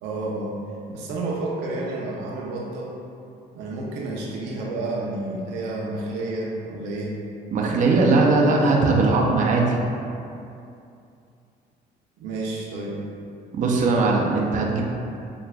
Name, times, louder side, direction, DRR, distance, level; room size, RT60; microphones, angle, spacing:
voice 1, 0.0-0.6 0.9-2.9 3.5-7.1 12.2-13.0, right 2 dB, 90° right, -3 dB, 0.7 m, -30 dB
voice 2, 7.5-9.8 13.5-14.8, right 3 dB, 50° right, -1 dB, 0.6 m, -19 dB
6.8 x 2.4 x 2.4 m, 2.6 s
cardioid pair, 110°, 17 cm